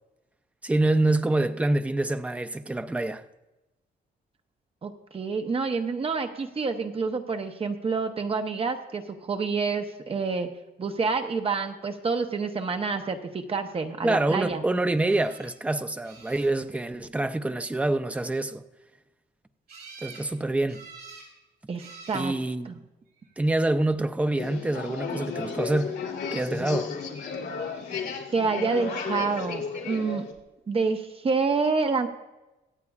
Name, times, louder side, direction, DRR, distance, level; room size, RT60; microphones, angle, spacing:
voice 1, 0.6-3.2 14.0-18.6 20.0-20.8 22.1-22.8 23.4-25.9 26.3-26.9, right 2 dB, 5° right, 0.4 m, -26 dB
voice 2, 4.8-10.5 10.8-14.6 21.7-22.3 22.7-22.8 28.3-30.2 30.7-32.1, right 4 dB, 30° right, 0.9 m, -28 dB
sound 1, 15.0-15.5 16.0-16.8 19.7-20.3 20.7-21.3 21.8-22.3 23.2-23.7 29.9-30.0 30.3-30.4, right 4 dB, 60° right, 4.9 m, -47 dB
sound 2, 24.4-30.3, left 5 dB, 75° left, 2.3 m, -33 dB
24.5 x 8.3 x 2.4 m
wide cardioid pair, 170°, 19 cm